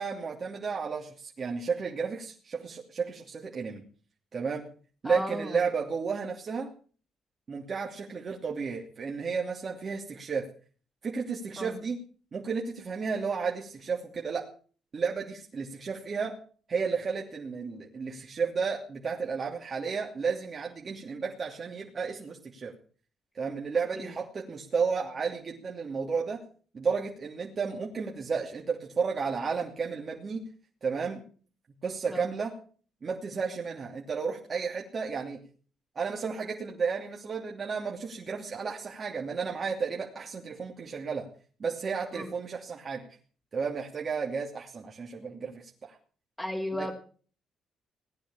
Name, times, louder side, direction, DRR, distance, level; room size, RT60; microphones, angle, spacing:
voice 1, 0.0-3.8 4.3-4.6 5.0-6.7 7.5-10.5 11.0-12.0 12.3-14.5 14.9-16.3 16.7-22.7 23.3-26.4 26.7-30.4 30.8-31.2 31.8-32.5 33.0-35.4 35.9-41.3 41.6-43.1 43.5-46.0 46.8-46.9, right 5 dB, 40° right, 0 dB, 2.9 m, -32 dB
voice 2, 5.0-5.6 11.6-11.7 24.0-24.1 32.1-32.2 42.1-42.3 46.4-46.9, left 1 dB, 10° left, -2 dB, 3.1 m, -34 dB
18.5 x 10.0 x 7.3 m, 0.43 s
cardioid pair, 90°, 0 cm